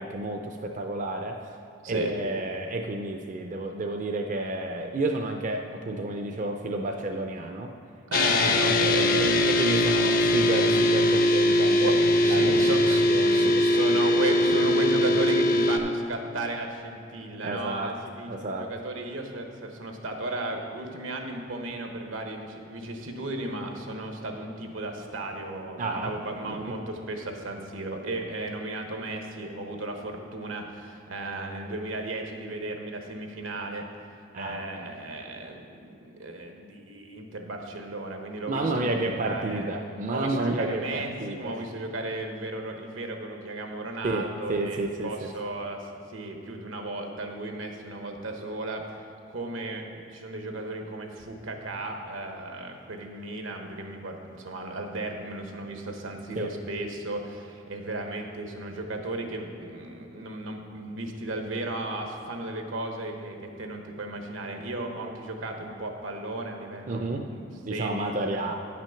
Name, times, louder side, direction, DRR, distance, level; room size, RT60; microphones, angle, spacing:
voice 1, 0.0-1.5 1.9-7.7 8.6-8.8 9.2-11.9 12.2-12.6 13.1-13.9 17.4-18.0 18.3-18.7 25.8-26.2 26.5-26.6 34.3-34.7 38.5-41.6 44.0-45.3 56.4-56.5 66.9-67.2 67.6-68.5, right 2 dB, 40° right, 3 dB, 0.4 m, -30 dB
sound 1, 8.1-15.8, left 1 dB, 45° left, 0.5 m, -21 dB
voice 2, 8.1-9.4 11.7-33.9 34.4-39.7 40.1-68.5, right 2 dB, 85° right, 3 dB, 1.1 m, -34 dB
9.6 x 5.9 x 5.7 m, 2.7 s
head